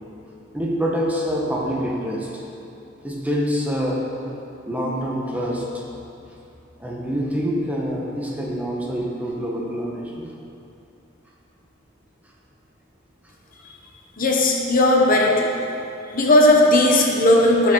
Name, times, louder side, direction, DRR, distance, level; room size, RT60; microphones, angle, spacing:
voice 1, 0.5-2.4 3.0-4.1 4.7-5.8 6.8-10.3, equal, 5° right, -3 dB, 1.0 m, -26 dB
voice 2, 14.2-15.5 16.1-17.7, left 1 dB, 40° left, 0 dB, 0.9 m, -16 dB
13.0 x 6.3 x 3.8 m, 2.7 s
head